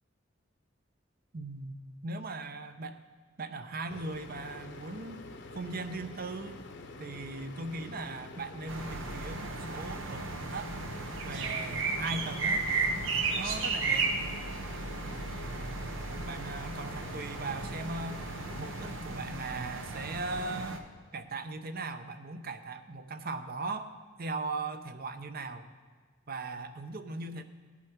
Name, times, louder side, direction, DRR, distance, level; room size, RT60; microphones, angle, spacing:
voice 1, 1.3-3.0 3.4-5.2 5.5-6.6 7.0-10.7 11.2-12.7 13.4-14.1 16.3-18.2 18.6-20.9 21.1-25.7 26.3-27.4, right 3 dB, 50° right, 9 dB, 0.7 m, -39 dB
sound 1, 3.9-18.9, left 2 dB, 65° left, 0.9 m, -47 dB
sound 2, 8.7-20.8, right 3 dB, 80° right, 1.0 m, -34 dB
17.5 x 8.3 x 4.5 m, 1.5 s
head